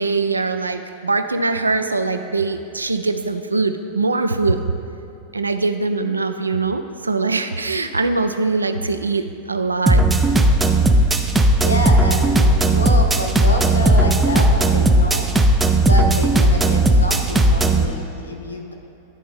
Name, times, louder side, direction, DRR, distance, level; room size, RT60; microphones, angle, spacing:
voice 1, 0.0-4.6 5.3-10.1, right 3 dB, 80° right, 8 dB, 0.3 m, -22 dB
sound 1, 9.9-17.9, right 1 dB, 10° right, 0.5 m, -15 dB
voice 2, 11.3-15.3 15.7-18.7, left 1 dB, 80° left, 2 dB, 0.8 m, -27 dB
11.0 x 4.2 x 3.5 m, 2.9 s
figure-of-eight pair, 90°, 0 cm